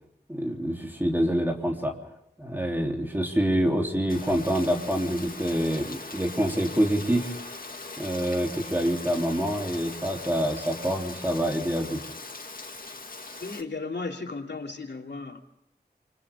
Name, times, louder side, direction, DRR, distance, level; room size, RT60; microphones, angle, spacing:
voice 1, 0.3-1.9 2.4-7.4 8.0-12.0, equal, 10° right, 1 dB, 3.4 m, -26 dB
Rain, 4.1-13.6, left 3 dB, 55° left, 2.1 m, -40 dB
voice 2, 13.4-15.4, left 3 dB, 85° left, 2 dB, 2.9 m, -35 dB
29.0 x 25.5 x 3.7 m, 0.82 s
wide cardioid pair, 75°, 17 cm